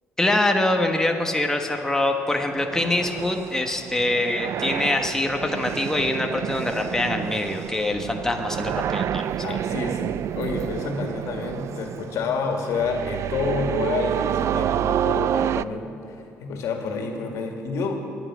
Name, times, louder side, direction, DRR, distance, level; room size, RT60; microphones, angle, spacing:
voice 1, 0.2-9.4, left 2 dB, 10° left, 3 dB, 1.3 m, -24 dB
sound 1, 2.5-15.6, right 10 dB, 60° right, 0.4 m, -29 dB
voice 2, 9.4-18.0, left 4 dB, 75° left, 3 dB, 2.1 m, -29 dB
22.0 x 9.3 x 6.2 m, 2.7 s
cardioid pair, 80°, 5 cm